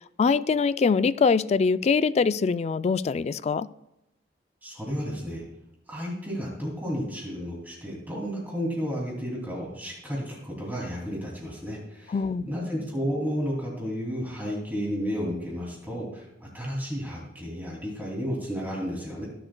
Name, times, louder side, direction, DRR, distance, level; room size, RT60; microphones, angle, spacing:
voice 1, 0.2-3.7 12.1-12.5, left 5 dB, 40° left, 16 dB, 0.3 m, -23 dB
voice 2, 4.6-5.4 5.9-12.2 12.4-19.3, equal, 10° right, -3 dB, 2.6 m, -32 dB
22.0 x 7.7 x 2.2 m, 0.90 s
head